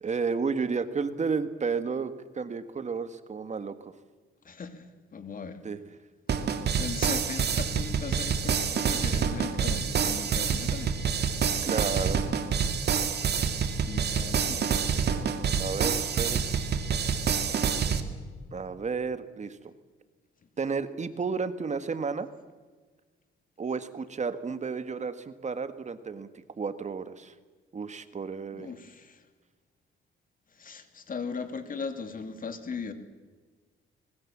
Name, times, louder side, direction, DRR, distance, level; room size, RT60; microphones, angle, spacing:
voice 1, 0.0-3.9 5.6-5.8 11.6-12.2 15.6-16.4 18.5-19.7 20.6-22.3 23.6-26.3 26.6-27.3 27.7-28.7, right 5 dB, 35° right, 11 dB, 1.6 m, -32 dB
voice 2, 4.4-5.6 6.8-11.0 13.8-14.7 28.5-29.2 30.5-32.9, left 5 dB, 45° left, 8 dB, 2.9 m, -38 dB
sound 1, 6.3-18.0, right 6 dB, 55° right, 2.3 m, -27 dB
25.5 x 21.0 x 7.4 m, 1.4 s
cardioid pair, 90°, 20 cm